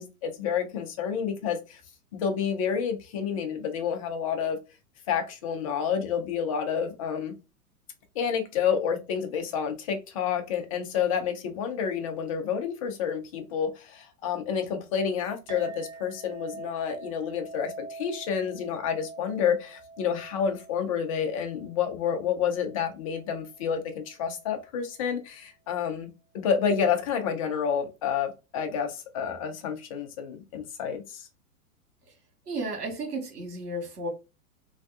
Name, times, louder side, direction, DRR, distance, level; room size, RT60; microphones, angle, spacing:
voice 1, 0.0-1.8 2.1-4.6 5.1-7.3 8.2-26.1 26.3-31.3, left 7 dB, 25° left, 0.3 m, -29 dB
Chink clink, 15.5-24.2, right 3 dB, 70° right, 0.9 m, -45 dB
voice 2, 32.5-34.1, right 2 dB, 90° right, 1.4 m, -33 dB
2.7 x 2.2 x 3.5 m
hypercardioid pair, 120°, 45 cm